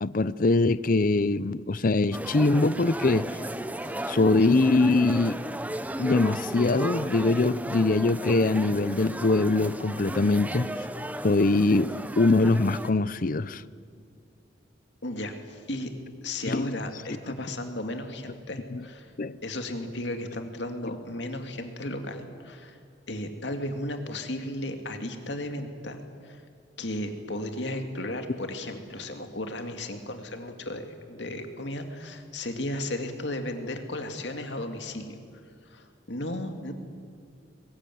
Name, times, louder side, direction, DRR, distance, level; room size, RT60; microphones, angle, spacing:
voice 1, 0.0-3.3 4.1-5.4 6.0-10.7 11.2-13.6 16.5-16.7 18.7-18.8 19.2-19.4, left 3 dB, 45° left, 0.6 m, -23 dB
sound 1, 2.1-12.9, right 1 dB, 10° right, 0.7 m, -35 dB
voice 2, 3.8-4.1 15.0-15.9 16.2-19.1 19.4-22.8 23.1-26.4 26.8-35.2 35.6-36.7, left 1 dB, 65° left, 2.4 m, -35 dB
22.5 x 20.5 x 9.4 m
head